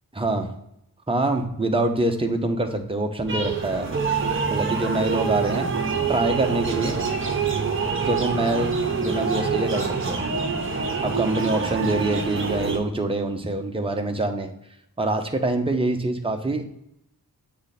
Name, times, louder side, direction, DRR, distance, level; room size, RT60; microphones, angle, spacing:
voice 1, 0.2-0.5 1.1-3.9 4.5-5.7 6.1-7.0 8.1-8.7 9.0-10.2 11.0-14.5 15.0-16.8, right 2 dB, 15° right, 4 dB, 0.7 m, -25 dB
sound 1, 3.3-12.8, right 5 dB, 30° right, 1.0 m, -26 dB
8.7 x 3.3 x 4.1 m, 0.79 s
wide cardioid pair, 130°, 40 cm